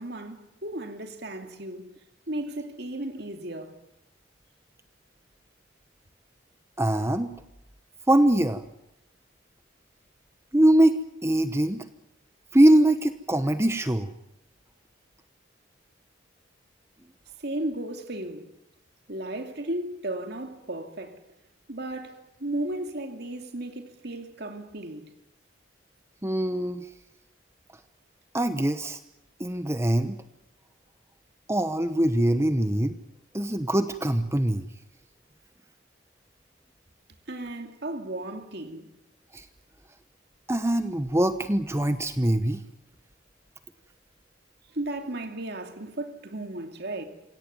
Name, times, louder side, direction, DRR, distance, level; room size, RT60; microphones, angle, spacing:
voice 1, 0.0-1.9 2.3-3.8 17.4-18.5 19.1-21.2 21.7-25.1 37.3-38.9 44.7-47.0, right 1 dB, 55° right, 2.7 m, -35 dB
voice 2, 6.8-7.3 8.1-8.6 10.5-11.8 12.5-14.1 26.2-26.9 28.3-29.0 29.4-30.2 31.5-33.0 33.3-34.7 39.3-39.4 40.5-42.6, right 1 dB, 15° right, 1.0 m, -23 dB
26.0 x 18.0 x 9.5 m
head